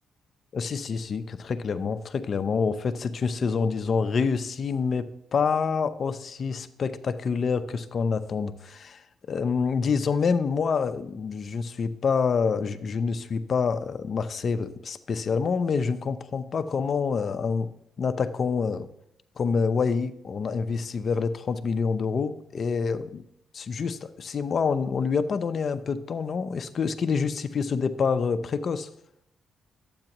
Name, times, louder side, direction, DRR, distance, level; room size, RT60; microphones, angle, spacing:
voice 1, 0.5-9.0 9.3-18.9 19.4-23.3 23.5-28.9, left 5 dB, 50° left, 11 dB, 0.7 m, -27 dB
12.0 x 8.7 x 3.0 m, 0.78 s
cardioid pair, 90°, 0 cm